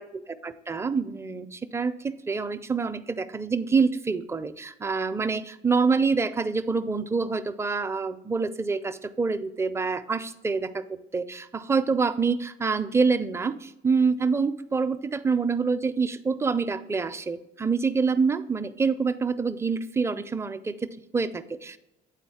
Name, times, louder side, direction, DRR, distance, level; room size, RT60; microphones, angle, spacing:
voice 1, 0.0-10.8 11.1-21.8, right 4 dB, 15° right, 10 dB, 0.4 m, -26 dB
8.5 x 4.2 x 4.2 m, 0.92 s
cardioid pair, 110°, 17 cm